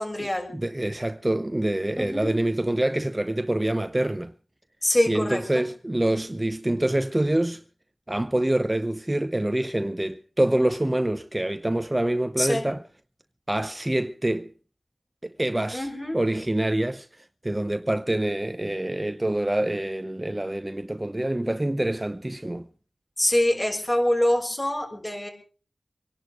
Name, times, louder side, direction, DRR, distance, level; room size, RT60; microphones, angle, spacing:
voice 1, 0.0-0.5 2.0-2.3 4.8-5.6 12.4-12.7 15.7-16.2 23.2-25.3, left 1 dB, 25° left, 6.5 m, -25 dB
voice 2, 0.5-4.3 5.1-7.6 8.1-12.8 13.5-14.5 15.4-15.9 16.1-22.7, right 1 dB, 20° right, 0.7 m, -26 dB
25.5 x 11.0 x 4.9 m
wide cardioid pair, 80°, 0 cm